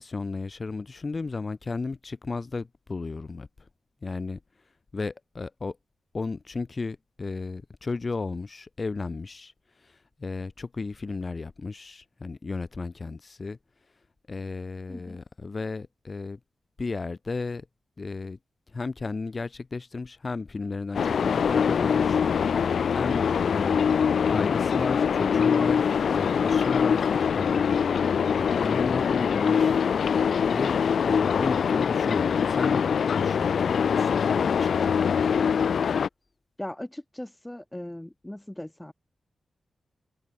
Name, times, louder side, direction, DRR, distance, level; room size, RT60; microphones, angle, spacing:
voice 1, 0.0-3.5 4.0-4.4 4.9-5.8 6.1-9.5 9.8-13.6 14.3-16.4 16.8-17.7 18.0-18.4 18.7-27.9 28.4-29.8 30.4-30.8 31.0-32.9 33.1-35.0, left 3 dB, 40° left, 7.3 m, -34 dB
voice 2, 14.9-15.2 36.6-38.9, left 1 dB, 10° left, 5.1 m, -38 dB
sound 1, 20.9-36.1, left 7 dB, 80° left, 1.3 m, -23 dB
wide cardioid pair, 100°, 0 cm